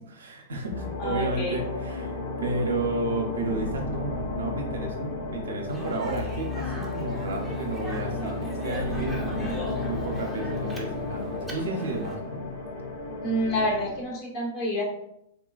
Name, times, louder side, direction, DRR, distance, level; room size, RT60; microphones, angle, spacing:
voice 1, 0.1-12.4, right 2 dB, 75° right, 1 dB, 0.6 m, -32 dB
sound 1, 0.7-14.0, left 2 dB, 65° left, 0.5 m, -33 dB
voice 2, 1.0-1.6 9.3-9.5 13.2-14.8, equal, 40° left, -3 dB, 1.0 m, -28 dB
Speech, 5.7-12.2, equal, 5° right, 0.6 m, -41 dB
3.5 x 2.2 x 2.4 m, 0.77 s
hypercardioid pair, 105°, 0 cm